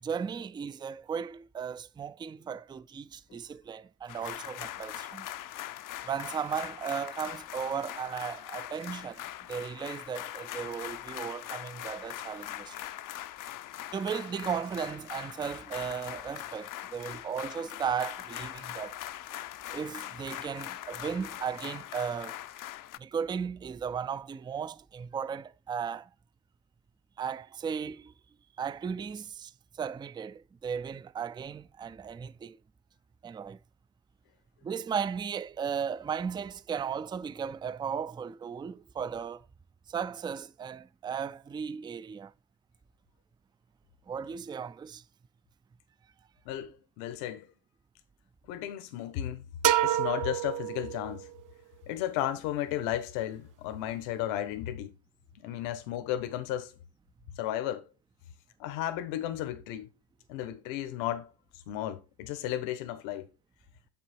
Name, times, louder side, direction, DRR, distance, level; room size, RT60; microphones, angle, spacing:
voice 1, 0.0-5.3 6.0-9.2 9.5-12.8 13.9-19.0 19.7-22.4 23.0-26.1 27.2-28.1 28.6-29.5 29.8-32.6 33.2-33.6 34.6-39.4 39.9-42.3 44.1-45.0, right 7 dB, 10° right, 0.3 m, -36 dB
sound 1, 4.1-23.0, left 13 dB, 40° left, 0.6 m, -41 dB
voice 2, 46.4-47.5 48.5-49.5 49.8-51.3 51.9-54.9 55.4-56.7 57.4-57.8 58.6-59.9 60.3-61.3 61.7-63.3, left 12 dB, 75° left, 1.4 m, -34 dB
sound 2, 49.6-51.4, right 12 dB, 40° right, 0.7 m, -28 dB
7.2 x 6.0 x 4.4 m
supercardioid pair, 85°, 47 cm